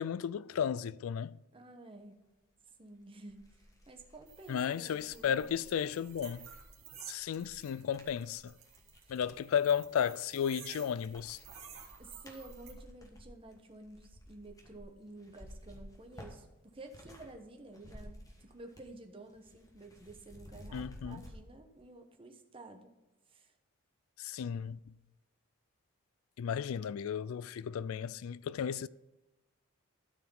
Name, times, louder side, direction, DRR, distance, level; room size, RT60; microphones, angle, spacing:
voice 1, 0.0-1.4 4.5-6.5 7.1-8.6 9.1-11.4 20.7-21.2 24.2-24.8 26.4-28.9, left 8 dB, 75° left, 0.3 m, -34 dB
voice 2, 1.5-2.2 2.8-5.5 12.0-22.9 23.3-23.5, right 2 dB, 25° right, 1.0 m, -52 dB
sound 1, 2.7-2.8 3.2-9.4 10.0-10.6 10.9-17.3 17.6-19.0 19.2-21.3, left 1 dB, 15° left, 1.4 m, -54 dB
sound 2, 4.3-12.7, right 8 dB, 75° right, 2.0 m, -53 dB
12.5 x 4.8 x 5.5 m
head